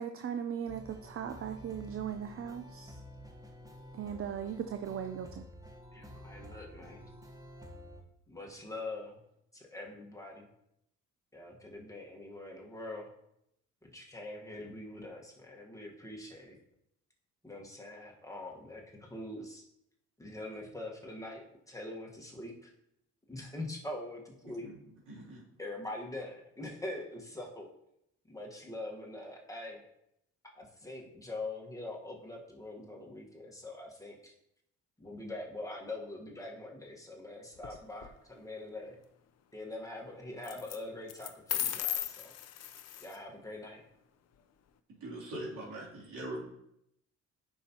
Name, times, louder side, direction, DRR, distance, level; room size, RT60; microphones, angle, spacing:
voice 1, 0.0-3.0 3.9-5.4, right 8 dB, 45° right, 7 dB, 0.5 m, -38 dB
sound 1, 0.7-8.0, equal, 10° right, 1.3 m, -50 dB
voice 2, 5.9-7.1 8.3-9.2 9.5-10.5 11.3-13.1 13.8-16.6 17.4-19.6 20.2-22.7 23.3-24.7 25.6-27.7 28.3-29.8 30.6-34.3 35.0-39.0 39.5-42.3 43.0-43.8, left 2 dB, 10° left, -1 dB, 1.5 m, -43 dB
voice 3, 25.1-25.4 45.0-46.4, right 1 dB, 75° right, -6 dB, 3.2 m, -41 dB
sound 2, 37.6-38.1 40.4-40.8 41.1-43.2, left 10 dB, 55° left, 0.6 m, -36 dB
9.1 x 5.7 x 3.0 m, 0.76 s
cardioid pair, 90°, 30 cm